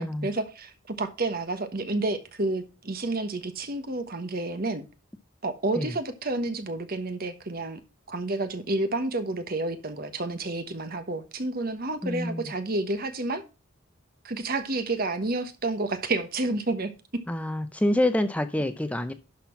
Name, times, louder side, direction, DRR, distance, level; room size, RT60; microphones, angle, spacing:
voice 1, 0.0-4.9 5.4-7.8 8.1-13.4 14.2-17.2, right 2 dB, 45° right, 1.2 m, -30 dB
voice 2, 12.0-12.5 17.3-19.1, left 1 dB, 5° left, 0.5 m, -27 dB
11.5 x 4.3 x 5.8 m
head